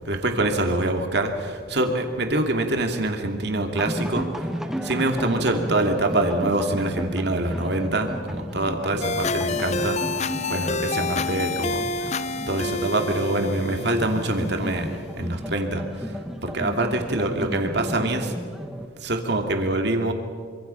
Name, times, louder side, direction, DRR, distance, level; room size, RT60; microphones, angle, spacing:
voice 1, 0.1-4.3 4.8-10.0 10.5-11.8 12.5-15.8 16.4-18.3 19.0-20.1, right 2 dB, 55° right, 4 dB, 2.5 m, -25 dB
sound 1, 3.7-18.9, equal, ahead, 1.1 m, -34 dB
sound 2, 9.0-15.0, left 3 dB, 35° left, 0.5 m, -29 dB
26.0 x 25.0 x 5.7 m, 2.1 s
head